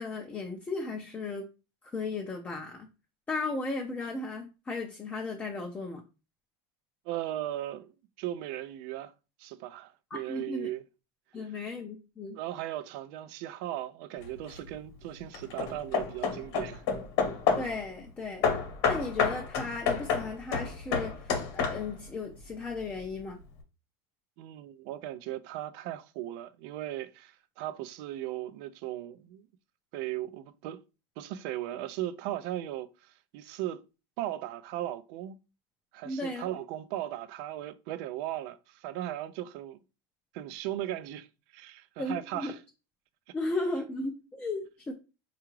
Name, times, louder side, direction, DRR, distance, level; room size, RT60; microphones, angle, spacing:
voice 1, 0.0-1.4 1.8-2.9 3.3-6.0 10.1-10.7 11.3-12.4 17.6-18.6 18.9-23.4 36.0-36.5 42.0-42.5 43.3-44.9, left 3 dB, 10° left, 0.4 m, -35 dB
voice 2, 7.1-9.1 9.4-10.8 12.4-16.8 24.4-29.5 29.9-30.8 31.2-33.8 34.2-35.4 35.9-39.8 40.3-41.3 41.5-42.6, right 13 dB, 60° right, 0.4 m, -37 dB
Hammer / Wood, 14.2-14.7 15.3-17.8 18.4-22.1, left 5 dB, 55° left, 0.9 m, -29 dB
4.6 x 2.4 x 3.0 m
supercardioid pair, 150°, 12 cm